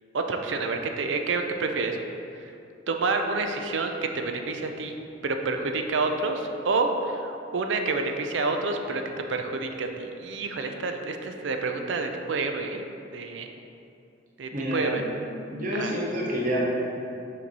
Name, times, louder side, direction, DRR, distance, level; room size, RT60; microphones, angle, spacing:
voice 1, 0.1-2.0 2.9-5.0 5.2-9.0 9.3-12.8 13.1-13.5 14.4-15.0 15.7-15.9, right 3 dB, 70° right, 5 dB, 0.5 m, -28 dB
voice 2, 14.5-15.1 15.5-16.6, equal, 45° right, -4 dB, 0.9 m, -28 dB
6.0 x 4.4 x 4.1 m, 2.7 s
head